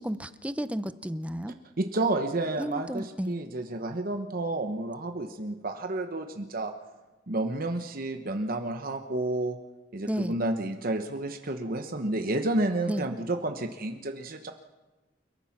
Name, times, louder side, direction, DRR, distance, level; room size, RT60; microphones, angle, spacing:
voice 1, 0.0-1.6 2.6-3.4 10.1-10.4 12.9-13.1, equal, 5° right, 12 dB, 0.6 m, -32 dB
voice 2, 1.8-6.7 7.3-9.6 9.9-14.5, right 2 dB, 50° right, 6 dB, 1.1 m, -30 dB
29.5 x 14.5 x 6.0 m, 1.2 s
head